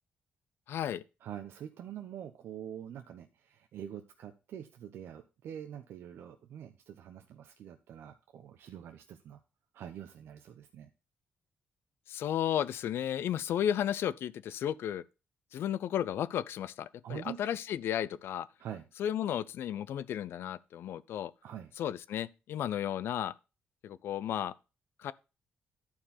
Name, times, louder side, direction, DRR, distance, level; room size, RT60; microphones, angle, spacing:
voice 1, 0.7-1.0 12.1-15.0 15.5-18.5 19.0-21.3 21.8-23.3 23.8-24.5 25.0-25.1, left 10 dB, 75° left, 0.6 m, -33 dB
voice 2, 1.2-9.4 9.7-10.9 17.0-17.4 18.6-18.8 21.4-21.7, right 9 dB, 75° right, 0.9 m, -45 dB
11.5 x 4.6 x 5.6 m
cardioid pair, 115°, 4 cm